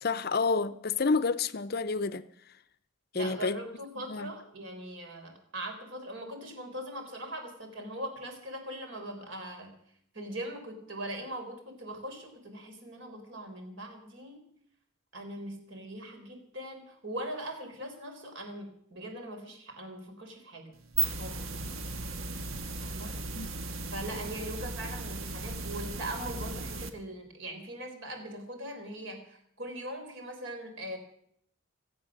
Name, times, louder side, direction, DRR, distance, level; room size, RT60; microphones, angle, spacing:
voice 1, 0.0-2.2 3.1-3.6 4.0-4.3 23.3-23.5, left 4 dB, 50° left, 0.6 m, -29 dB
voice 2, 3.1-9.8 10.1-14.5 15.1-20.8 21.2-21.5 22.8-23.3 23.9-31.0, right 1 dB, 65° right, 4.0 m, -41 dB
sound 1, 20.7-26.9, right 4 dB, 85° right, 1.5 m, -36 dB
25.0 x 8.6 x 6.5 m
head